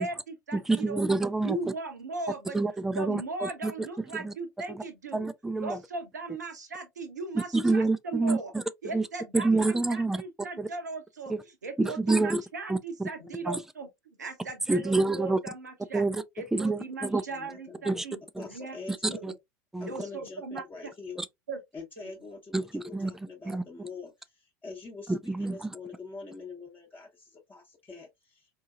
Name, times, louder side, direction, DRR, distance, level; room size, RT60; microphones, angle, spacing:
voice 1, 0.0-1.0 1.4-2.6 2.9-5.3 5.6-8.5 8.8-9.6 9.9-13.9 14.2-16.0 16.4-18.2 18.5-18.8 19.1-19.3 19.9-20.6 21.5-21.6, right 3 dB, 75° right, 0.7 m, -38 dB
voice 2, 0.5-1.6 2.5-3.7 4.2-4.3 5.1-5.8 7.3-8.6 8.9-9.0 9.3-10.2 10.6-10.7 11.3-11.4 11.8-12.4 12.7-12.8 13.5-13.6 14.7-15.4 15.9-16.2 16.5-17.2 17.9-18.0 18.4-18.5 19.2-19.3 19.7-19.9 21.2-21.3 22.5-23.1 23.5-23.6 25.1-25.7, right 3 dB, 5° right, 0.3 m, -27 dB
voice 3, 17.3-17.8 18.4-19.2 19.8-21.2 21.7-28.6, left 4 dB, 20° left, 1.0 m, -44 dB
4.4 x 2.7 x 2.3 m
figure-of-eight pair, 80°, 9 cm